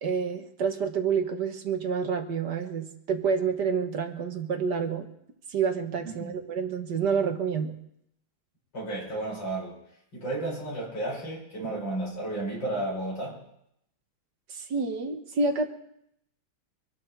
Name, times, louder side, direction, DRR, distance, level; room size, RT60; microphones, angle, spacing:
voice 1, 0.0-5.1 5.5-7.8 14.5-15.7, right 5 dB, 55° right, 5 dB, 1.8 m, -28 dB
voice 2, 6.0-6.4 8.7-9.8 10.1-13.4, right 2 dB, 65° left, -4 dB, 7.2 m, -33 dB
24.0 x 11.5 x 4.7 m, 0.76 s
omnidirectional pair, 2.3 m